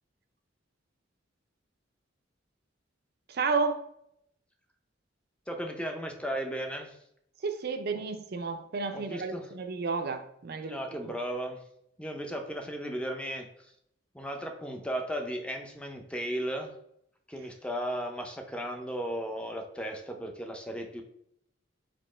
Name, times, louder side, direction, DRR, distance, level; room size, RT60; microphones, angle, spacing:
voice 1, 3.3-3.9 7.4-11.1 17.4-17.5, right 4 dB, 55° right, 0.4 m, -32 dB
voice 2, 5.5-7.0 8.9-9.5 10.7-11.6 12.0-13.5 14.1-16.7 17.3-21.0, equal, 5° left, 0.5 m, -35 dB
4.2 x 3.6 x 3.2 m
head